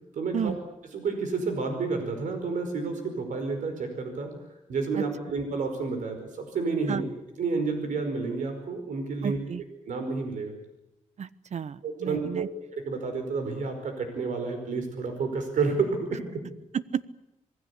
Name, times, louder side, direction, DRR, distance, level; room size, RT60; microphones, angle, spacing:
voice 1, 0.1-0.5 0.9-4.3 4.7-7.1 7.4-9.4 9.9-10.6 11.8-12.5 12.7-16.2, right 4 dB, 85° right, 5 dB, 5.1 m, -30 dB
voice 2, 9.2-9.6 11.2-12.5 16.7-17.1, right 7 dB, 65° right, 16 dB, 1.1 m, -32 dB
26.5 x 20.0 x 8.5 m, 0.90 s
cardioid pair, 80°, 13 cm